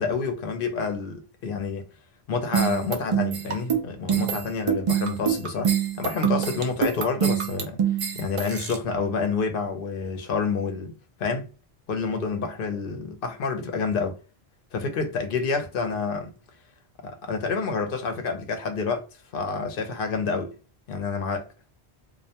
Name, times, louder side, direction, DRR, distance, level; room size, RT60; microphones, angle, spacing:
voice 1, 0.0-1.8 2.3-7.8 8.1-10.9 11.2-11.5 11.9-14.2 14.7-16.3 17.0-19.0 19.3-20.5 20.9-21.5, left 4 dB, 60° left, 0.7 m, -28 dB
sound 1, 2.5-8.8, right 8 dB, 55° right, 0.3 m, -25 dB
2.4 x 2.1 x 2.7 m
omnidirectional pair, 1.1 m